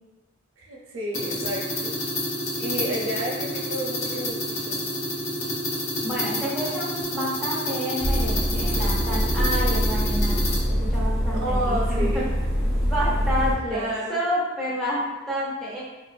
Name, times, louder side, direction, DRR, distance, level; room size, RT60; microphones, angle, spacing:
voice 1, 0.6-2.0 2.5-4.8 11.3-12.3 13.6-14.2, right 1 dB, 85° right, -2 dB, 0.6 m, -31 dB
sound 1, 1.1-10.6, left 1 dB, 80° left, 0.6 m, -29 dB
voice 2, 6.0-12.3 12.9-15.8, equal, ahead, -8 dB, 0.5 m, -29 dB
sound 2, 8.0-13.5, equal, 45° left, 0.8 m, -24 dB
2.9 x 2.1 x 2.3 m, 1.1 s
head